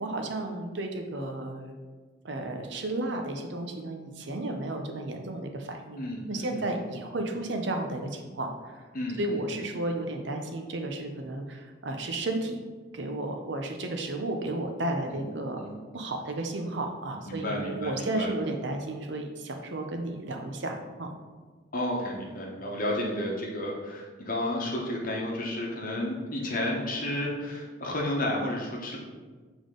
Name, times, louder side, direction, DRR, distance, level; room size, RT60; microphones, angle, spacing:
voice 1, 0.0-1.8 2.2-8.8 9.2-12.6 12.9-21.1, right 2 dB, 55° right, 4 dB, 0.6 m, -33 dB
voice 2, 6.0-6.7 8.9-9.6 15.1-15.2 15.6-15.7 17.3-18.3 21.7-29.0, left 1 dB, 40° left, -1 dB, 1.0 m, -32 dB
7.0 x 3.6 x 3.7 m, 1.4 s
head